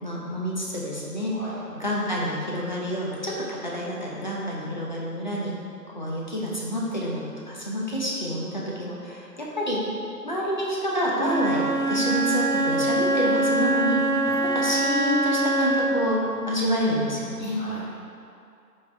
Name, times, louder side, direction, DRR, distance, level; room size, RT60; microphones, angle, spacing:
voice 1, 0.0-1.3 1.8-5.5 5.9-9.8 10.2-14.0 14.4-16.2 16.5-17.6, equal, 30° left, -4 dB, 0.9 m, -28 dB
voice 2, 1.3-1.7 14.2-14.4 16.3-16.5 17.3-18.0, left 1 dB, 5° left, -20 dB, 1.3 m, -41 dB
Wind instrument woodwind instrument, 11.1-16.1, right 2 dB, 65° right, 0.9 m, -24 dB
8.9 x 5.5 x 3.4 m, 2.5 s
figure-of-eight pair, 165°, 48 cm